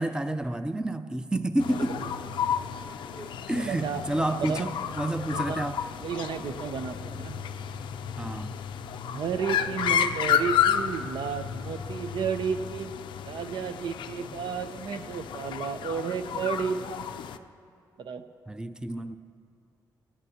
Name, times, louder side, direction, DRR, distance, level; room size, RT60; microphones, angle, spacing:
voice 1, 0.0-2.0 3.2-5.8 8.2-8.6 18.5-19.2, right 1 dB, 10° right, 10 dB, 0.6 m, -30 dB
sound 1, 1.6-17.4, left 8 dB, 85° left, 0.5 m, -32 dB
voice 2, 1.7-2.1 3.6-4.7 5.3-5.7 6.0-7.3 9.1-12.9 13.2-17.0 18.0-18.2, right 6 dB, 75° right, 8 dB, 0.7 m, -32 dB
18.5 x 17.0 x 2.9 m, 2.4 s
cardioid pair, 70°, 8 cm